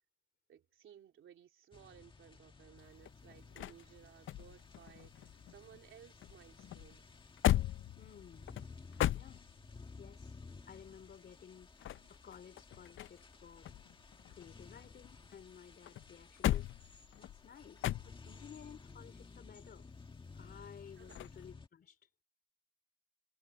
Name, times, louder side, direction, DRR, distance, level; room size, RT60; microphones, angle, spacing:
voice 1, 0.5-7.0 21.0-21.2, right 9 dB, 80° right, 3.4 m, -59 dB
sound 1, 1.7-21.7, left 4 dB, 25° left, 1.7 m, -56 dB
sound 2, 2.8-5.9 6.2-9.8 11.6-13.3 13.6-15.4 15.9-18.5 21.1-21.4, left 13 dB, 75° left, 0.5 m, -38 dB
voice 2, 8.0-8.5 9.1-9.4 10.0-10.4 10.7-13.7 14.3-19.9 20.3-22.1, left 8 dB, 50° left, 3.7 m, -55 dB
wide cardioid pair, 175°, 21 cm